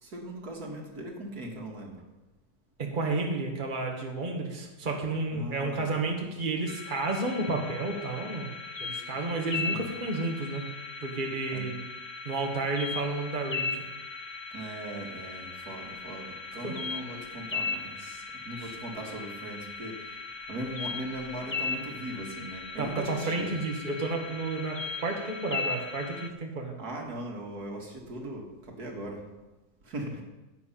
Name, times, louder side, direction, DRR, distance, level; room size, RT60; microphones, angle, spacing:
voice 1, 0.0-2.0 5.3-6.0 9.7-9.9 11.5-11.7 14.5-23.5 26.8-29.3 29.8-30.2, right 1 dB, 65° right, 1 dB, 2.3 m, -39 dB
voice 2, 2.8-8.5 8.8-10.6 11.0-11.8 12.3-13.7 16.6-16.7 18.6-18.7 22.8-26.8, right 3 dB, 30° right, 1 dB, 1.8 m, -31 dB
sound 1, 6.7-26.3, left 4 dB, 40° left, 0.4 m, -38 dB
15.5 x 8.7 x 5.7 m, 1.1 s
omnidirectional pair, 1.8 m